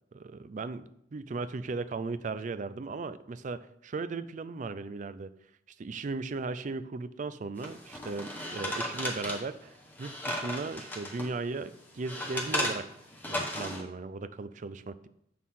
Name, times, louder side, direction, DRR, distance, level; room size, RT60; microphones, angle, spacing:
voice 1, 0.1-5.3 5.8-12.9 13.3-15.1, right 3 dB, 45° right, 13 dB, 0.4 m, -37 dB
sound 1, 7.6-11.3 11.7-13.8, left 1 dB, 10° left, 1.2 m, -35 dB
7.5 x 6.4 x 3.7 m, 0.77 s
head